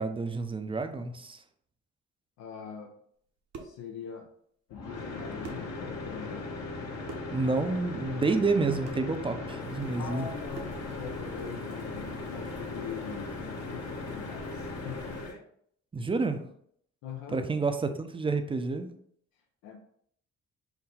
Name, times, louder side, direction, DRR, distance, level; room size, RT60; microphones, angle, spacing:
voice 1, 0.0-1.4 7.3-10.3 15.9-16.4 17.3-18.9, right 3 dB, 20° right, 8 dB, 0.4 m, -29 dB
voice 2, 2.4-2.9 3.6-4.3 4.7-6.5 10.0-15.1 17.0-17.4 19.6-19.8, left 7 dB, 90° left, 1 dB, 0.5 m, -42 dB
sound 1, 3.2-3.9 5.0-5.1 5.4-5.8 7.0-7.4 8.8-9.1 10.5-10.9, right 4 dB, 60° right, 0.8 m, -44 dB
sound 2, 4.7-15.4, left 3 dB, 55° left, 1.0 m, -38 dB
sound 3, 9.6-15.3, right 3 dB, 90° right, 0.7 m, -52 dB
3.9 x 2.2 x 4.1 m, 0.66 s
cardioid pair, 90°, 30 cm